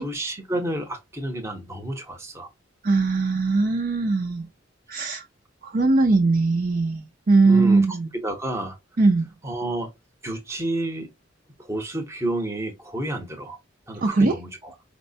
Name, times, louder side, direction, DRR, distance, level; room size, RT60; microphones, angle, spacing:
voice 1, 0.0-2.5 7.4-8.8 9.4-9.9 10.2-11.1 11.6-13.6 13.9-14.7, right 1 dB, 15° right, 0.8 m, -30 dB
voice 2, 2.8-4.4 4.9-5.2 5.6-8.1 9.0-9.3 14.0-14.4, right 3 dB, 45° right, 0.5 m, -20 dB
4.4 x 2.1 x 2.7 m
head